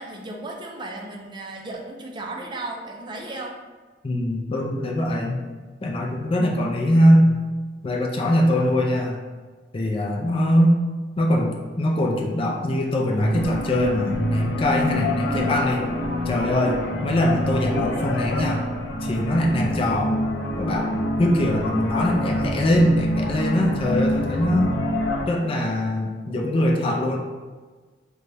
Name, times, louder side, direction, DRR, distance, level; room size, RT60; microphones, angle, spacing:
voice 1, 0.0-3.6, right 2 dB, 25° right, 0 dB, 0.5 m, -35 dB
voice 2, 4.0-5.4 5.8-7.3 7.8-9.2 9.7-10.7 11.2-15.9 16.3-18.6 19.0-20.2 20.6-20.9 21.2-24.7 25.3-27.2, left 1 dB, 30° left, 0 dB, 0.4 m, -22 dB
sound 1, 13.2-25.2, left 1 dB, 85° left, 0.5 m, -26 dB
3.9 x 2.2 x 3.3 m, 1.4 s
head